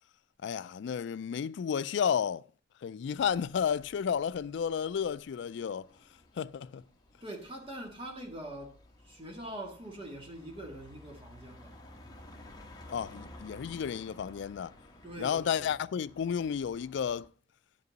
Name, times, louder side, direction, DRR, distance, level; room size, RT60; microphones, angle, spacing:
voice 1, 0.4-2.4 2.8-5.9 6.4-6.8 12.9-14.7 15.2-17.3, left 7 dB, 65° left, 0.3 m, -32 dB
sound 1, 3.1-17.3, left 1 dB, 20° left, 1.1 m, -54 dB
voice 2, 7.2-8.8 9.0-11.8 15.0-15.8, right 1 dB, 30° right, 1.8 m, -43 dB
9.9 x 5.4 x 3.9 m
head